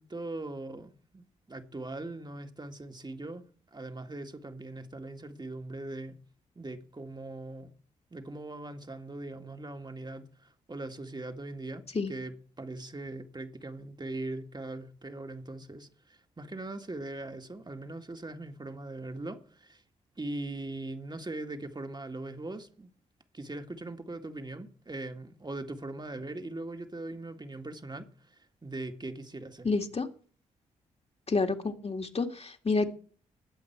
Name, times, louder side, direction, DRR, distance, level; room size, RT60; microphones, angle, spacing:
voice 1, 0.0-3.4 3.7-6.2 6.6-7.7 8.1-11.8 12.1-19.8 20.2-22.9 23.3-29.7, right 2 dB, 25° right, 2.0 m, -40 dB
voice 2, 29.6-30.1 31.3-32.9, left 3 dB, 40° left, 2.3 m, -29 dB
20.5 x 7.9 x 4.6 m
hypercardioid pair, 40°, 17 cm